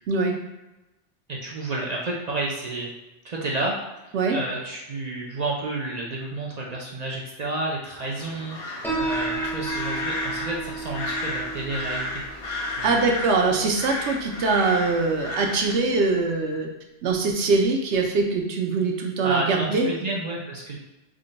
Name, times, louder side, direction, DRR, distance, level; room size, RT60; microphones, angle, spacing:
voice 1, 1.3-2.9 3.2-3.8 4.0-12.2 12.6-13.0 19.2-20.8, right 2 dB, 55° right, -2 dB, 0.5 m, -31 dB
sound 1, 8.0-15.8, left 2 dB, 60° left, 0.9 m, -33 dB
Piano, 8.8-15.9, right 3 dB, ahead, 0.6 m, -35 dB
voice 2, 12.8-16.7 17.0-19.9, right 3 dB, 70° right, 2 dB, 0.9 m, -23 dB
3.7 x 2.1 x 3.9 m, 1.0 s
omnidirectional pair, 1.2 m